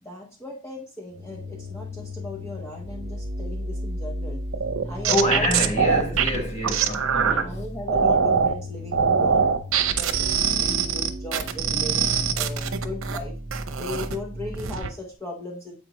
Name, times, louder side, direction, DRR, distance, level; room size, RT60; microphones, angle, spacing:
voice 1, 0.0-4.4 4.8-5.5 5.8-6.2 6.6-6.8 7.4-9.5 9.9-13.4 13.8-15.8, left 1 dB, 15° left, 0.9 m, -37 dB
sound 1, 1.1-14.8, equal, 50° right, 0.9 m, -34 dB
sound 2, 4.5-7.4 7.9-8.5 8.9-13.2 13.5-14.2 14.5-14.9, right 6 dB, 85° right, 0.7 m, -23 dB
voice 2, 5.1-7.7, left 1 dB, 30° left, 1.2 m, -27 dB
7.5 x 5.1 x 3.0 m
head